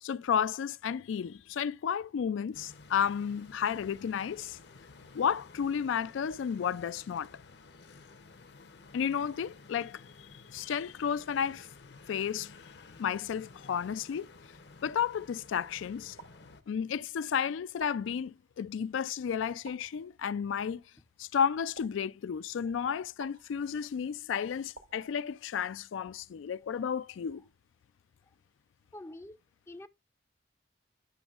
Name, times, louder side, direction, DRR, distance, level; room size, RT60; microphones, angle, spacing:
voice 1, 0.0-4.6 5.1-7.3 8.9-10.0 10.5-11.7 12.1-12.5 13.0-14.3 14.8-16.2 16.7-20.8 21.2-27.4, left 7 dB, 85° left, 0.3 m, -32 dB
sound 1, 2.5-16.6, left 3 dB, 60° left, 0.8 m, -54 dB
sound 2, 16.2-17.1 17.8-18.7 19.6-20.5 21.7-22.7 23.2-24.0 24.7-25.7, right 5 dB, 60° right, 0.9 m, -55 dB
voice 2, 28.9-29.4 29.7-29.9, left 1 dB, 15° left, 0.4 m, -45 dB
10.5 x 6.1 x 2.4 m
head